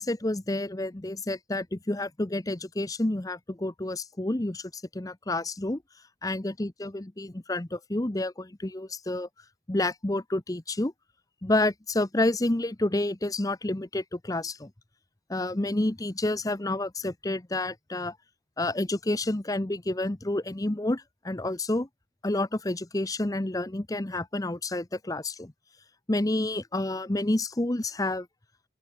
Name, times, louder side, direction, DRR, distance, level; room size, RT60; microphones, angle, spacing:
voice 1, 0.0-5.8 6.2-9.3 9.7-10.9 11.4-14.7 15.3-18.2 18.6-21.9 22.2-25.5 26.1-28.3, left 1 dB, 20° left, 0.7 m, -29 dB
open air
head